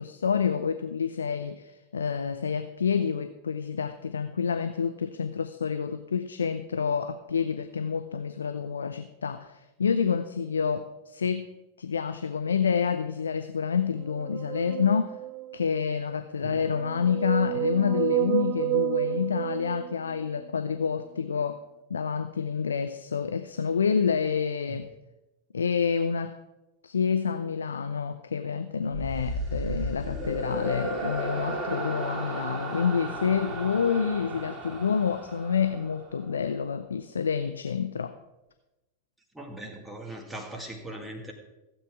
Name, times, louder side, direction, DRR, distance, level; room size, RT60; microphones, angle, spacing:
voice 1, 0.0-11.5 11.8-15.2 15.5-21.6 21.9-24.9 25.5-26.4 26.8-38.2, left 6 dB, 70° left, 10 dB, 0.5 m, -28 dB
sound 1, 14.1-15.7 16.5-20.4, right 16 dB, 40° right, 0.3 m, -30 dB
sound 2, 28.9-36.3, right 1 dB, 20° right, 2.5 m, -34 dB
voice 2, 39.3-41.3, right 1 dB, 5° right, 1 dB, 2.0 m, -40 dB
15.5 x 8.3 x 4.7 m, 1.0 s
figure-of-eight pair, 90°, 0 cm